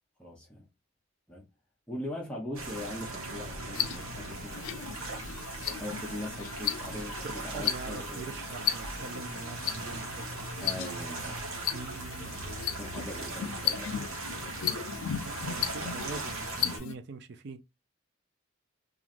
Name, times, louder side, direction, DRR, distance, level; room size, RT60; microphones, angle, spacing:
voice 1, 0.2-0.6 1.3-1.4 1.9-5.2 5.6-8.3 10.6-11.6 12.2-12.4 12.8-14.3, left 1 dB, 5° left, 0.6 m, -41 dB
sound 1, 2.5-16.8, right 2 dB, 80° right, 1.0 m, -39 dB
sound 2, 3.7-16.9, left 10 dB, 80° left, 0.4 m, -36 dB
voice 2, 7.5-10.3 11.7-12.4 15.2-17.6, right 4 dB, 50° right, 0.4 m, -43 dB
3.1 x 2.4 x 2.4 m
head